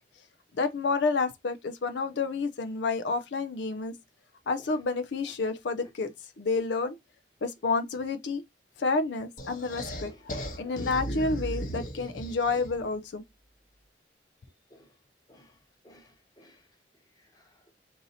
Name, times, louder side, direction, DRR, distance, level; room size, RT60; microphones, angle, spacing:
voice 1, 0.6-3.9 4.5-6.1 6.4-7.0 7.4-8.4 8.8-10.1 10.6-13.2, left 4 dB, 80° left, 0.5 m, -29 dB
sound 1, 9.4-12.9, equal, 50° left, 1.0 m, -36 dB
voice 2, 15.8-16.6 17.2-17.6, equal, 20° left, 1.0 m, -55 dB
4.0 x 2.7 x 3.9 m
head